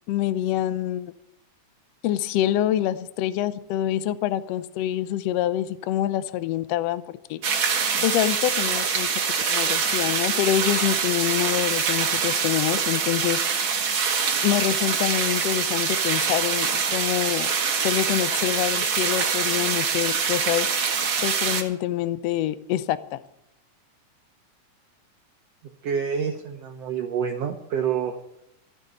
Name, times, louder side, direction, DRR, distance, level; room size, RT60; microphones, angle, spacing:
voice 1, 0.1-1.1 2.0-7.0 7.3-7.4 8.0-9.2 9.5-13.4 14.4-17.5 17.8-20.7 21.2-23.2, left 12 dB, 80° left, 14 dB, 1.4 m, -26 dB
sound 1, 7.4-21.6, right 6 dB, 50° right, 1.9 m, -24 dB
voice 2, 25.8-28.2, right 7 dB, 70° right, 4 dB, 1.6 m, -27 dB
13.5 x 6.7 x 9.7 m, 0.83 s
omnidirectional pair, 3.7 m